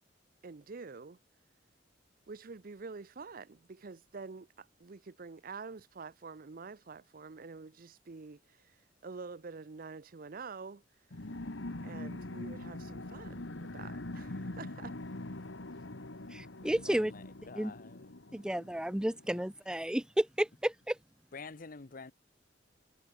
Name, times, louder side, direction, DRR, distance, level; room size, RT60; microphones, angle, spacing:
voice 1, 0.4-1.2 2.3-10.8 11.8-14.9, right 4 dB, 50° right, 0.6 m, -47 dB
sound 1, 11.1-19.3, left 2 dB, 80° left, 1.7 m, -43 dB
voice 2, 16.3-17.1 17.6-17.7 18.3-21.0, right 1 dB, 5° right, 0.4 m, -32 dB
voice 3, 16.9-18.4 19.3-19.4 21.3-22.1, left 4 dB, 50° left, 0.8 m, -48 dB
head